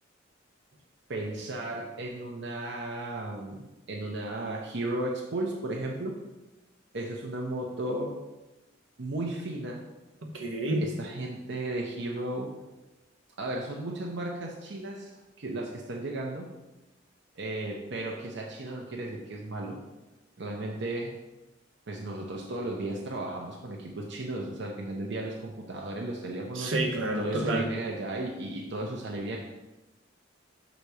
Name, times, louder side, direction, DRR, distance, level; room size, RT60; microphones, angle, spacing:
voice 1, 1.1-6.2 6.9-8.2 9.0-9.8 10.8-12.5 13.4-16.5 17.4-19.8 20.4-21.1 21.9-26.8 27.2-29.5, right 2 dB, 65° right, 0 dB, 0.7 m, -35 dB
voice 2, 10.2-10.9 26.5-27.7, right 1 dB, 90° right, 2 dB, 1.1 m, -29 dB
6.6 x 4.1 x 4.8 m, 1.0 s
head